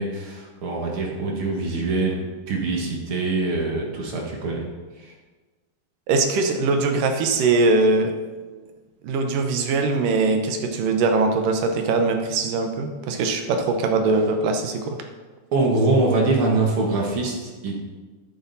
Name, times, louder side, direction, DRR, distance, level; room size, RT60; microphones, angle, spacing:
voice 1, 0.0-2.2 2.5-4.6 5.0-5.1 15.5-17.9, right 3 dB, 50° right, -1 dB, 2.0 m, -23 dB
voice 2, 6.1-8.1 9.0-15.0, right 3 dB, 75° right, 5 dB, 2.6 m, -21 dB
13.0 x 8.8 x 4.1 m, 1.3 s
omnidirectional pair, 3.9 m